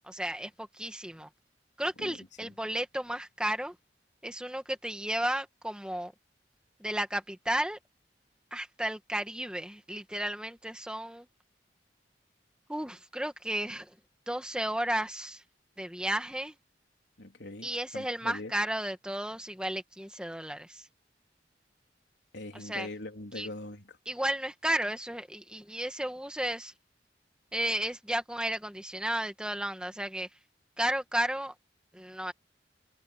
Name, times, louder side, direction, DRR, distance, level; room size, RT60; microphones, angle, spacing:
voice 1, 0.1-1.3 1.8-3.8 4.2-6.1 6.8-7.8 8.5-11.3 12.7-13.9 14.3-15.4 15.8-16.5 17.6-20.9 22.5-22.9 23.4-23.5 24.1-26.7 27.5-30.3 30.8-31.5 31.9-32.3, right 1 dB, 5° right, 1.9 m, -33 dB
voice 2, 2.0-2.5 17.2-18.5 22.3-24.0, left 2 dB, 80° left, 3.5 m, -42 dB
head